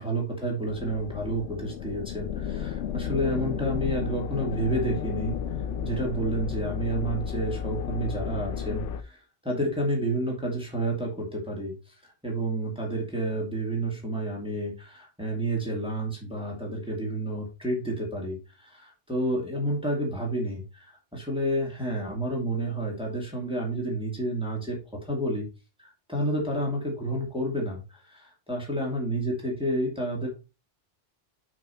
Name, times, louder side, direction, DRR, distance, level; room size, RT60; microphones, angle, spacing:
voice 1, 0.0-25.5 25.8-30.3, right 1 dB, 5° right, -1 dB, 2.4 m, -30 dB
sound 1, 0.7-9.0, left 8 dB, 75° left, 1.0 m, -33 dB
6.5 x 6.0 x 4.3 m, 0.30 s
omnidirectional pair, 1.3 m